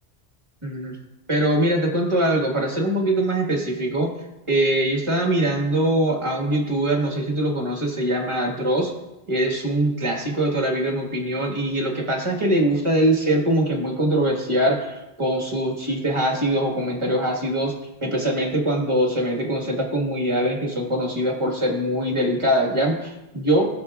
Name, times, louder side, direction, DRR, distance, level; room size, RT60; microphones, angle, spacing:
voice 1, 0.6-0.9 1.3-4.1 4.5-8.9 9.3-17.7 18.0-23.7, right 1 dB, 30° right, -1 dB, 1.6 m, -22 dB
15.5 x 6.3 x 2.4 m, 0.97 s
omnidirectional pair, 1.1 m